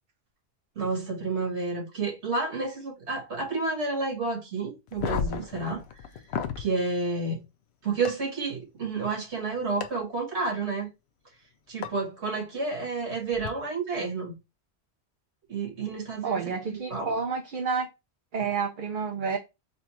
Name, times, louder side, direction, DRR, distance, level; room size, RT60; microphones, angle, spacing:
voice 1, 0.8-5.8 6.6-7.4 7.8-10.9 11.7-14.3 15.5-16.4 16.9-17.1 18.4-18.5, right 3 dB, 80° right, 1.9 m, -30 dB
sound 1, 4.9-6.7 8.1-8.2 9.8-9.9 11.8-11.9 13.3-13.5, left 7 dB, 70° left, 0.8 m, -32 dB
voice 2, 16.2-17.9 18.3-19.4, right 5 dB, 55° right, 0.7 m, -29 dB
4.3 x 2.4 x 4.2 m
omnidirectional pair, 1.1 m